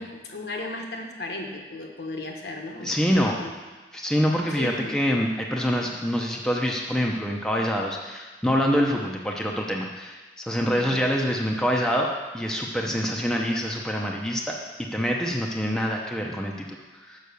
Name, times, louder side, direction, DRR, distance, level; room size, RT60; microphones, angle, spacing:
voice 1, 0.0-3.5 4.3-5.0 10.6-11.0, left 2 dB, 65° left, 2 dB, 1.2 m, -36 dB
voice 2, 2.8-3.4 3.9-17.2, equal, 5° left, -1 dB, 0.6 m, -26 dB
6.5 x 5.6 x 6.9 m, 1.3 s
head